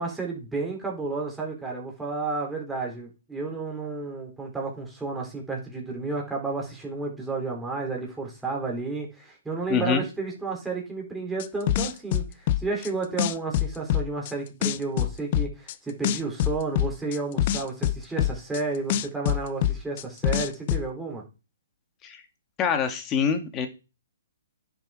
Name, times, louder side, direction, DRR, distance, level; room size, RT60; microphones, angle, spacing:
voice 1, 0.0-21.2, right 3 dB, 5° right, -1 dB, 3.8 m, -32 dB
voice 2, 9.7-10.0 22.0-22.2 22.6-23.7, left 6 dB, 20° left, 6 dB, 2.1 m, -25 dB
sound 1, 11.4-12.9 13.2-14.3 14.6-15.7 16.0-18.6 18.9-20.8, left 12 dB, 40° left, 0.6 m, -24 dB
10.5 x 7.2 x 5.0 m, 0.31 s
hypercardioid pair, 140°, 0 cm